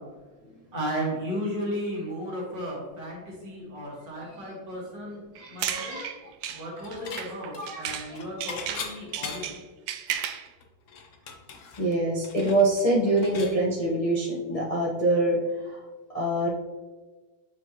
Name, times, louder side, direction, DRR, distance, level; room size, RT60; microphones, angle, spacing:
voice 1, 0.7-5.2 5.5-6.0 6.5-9.6, equal, 55° right, -4 dB, 2.5 m, -34 dB
sound 1, 5.3-8.1 8.4-10.5, right 10 dB, 85° right, 0.9 m, -34 dB
voice 2, 5.4-6.1 7.2-7.8 8.1-8.2 11.8-15.4 16.1-16.5, right 1 dB, 30° left, -7 dB, 0.7 m, -25 dB
Dishes pots and pans / Chink clink, 6.5-7.3 7.5-9.7 10.1-10.2 10.5-13.6, left 5 dB, 80° left, 0.6 m, -40 dB
7.1 x 5.3 x 3.0 m, 1.3 s
omnidirectional pair, 2.3 m